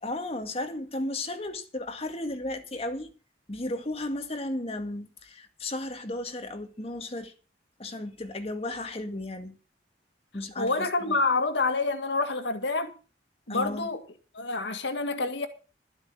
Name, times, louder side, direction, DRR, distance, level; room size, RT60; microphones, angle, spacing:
voice 1, 0.0-3.1 3.5-7.3 7.8-9.6 10.3-11.2 13.5-13.9, left 1 dB, 35° left, 2.0 m, -34 dB
voice 2, 10.6-12.9 13.5-14.0 14.3-15.5, left 3 dB, 80° left, 1.9 m, -27 dB
12.5 x 8.0 x 7.1 m
head